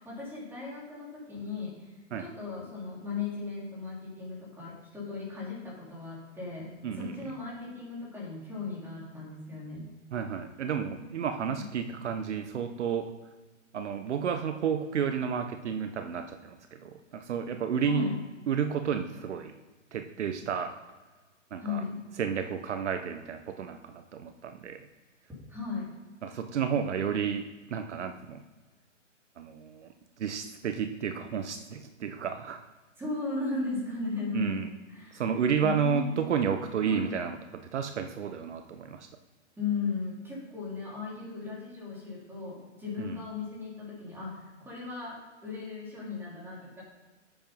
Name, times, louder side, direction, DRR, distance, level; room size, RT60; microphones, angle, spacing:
voice 1, 0.0-1.9 2.2-6.7 6.9-9.9 11.4-11.7 17.8-18.2 21.6-22.0 25.5-25.9 33.0-35.2 35.6-36.2 36.8-37.0 39.6-46.8, left 4 dB, 5° right, -5 dB, 3.6 m, -36 dB
voice 2, 6.8-7.3 10.1-13.1 13.7-18.1 18.5-19.5 19.9-20.7 21.5-21.8 22.2-24.8 26.2-28.4 29.4-29.9 30.2-32.6 34.3-34.7 35.1-39.1 43.0-43.2, right 7 dB, 65° right, 8 dB, 0.9 m, -31 dB
8.8 x 7.1 x 5.4 m, 1.3 s
hypercardioid pair, 150°, 37 cm